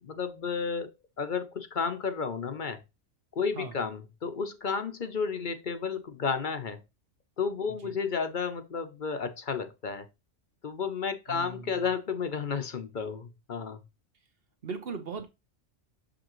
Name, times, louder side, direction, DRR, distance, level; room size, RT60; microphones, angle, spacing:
voice 1, 0.0-2.8 3.4-6.8 7.4-10.1 10.6-13.8, left 5 dB, 50° left, 0.8 m, -32 dB
voice 2, 11.3-11.9 14.6-15.3, right 4 dB, 55° right, 1.4 m, -39 dB
6.7 x 5.1 x 3.0 m
omnidirectional pair, 1.2 m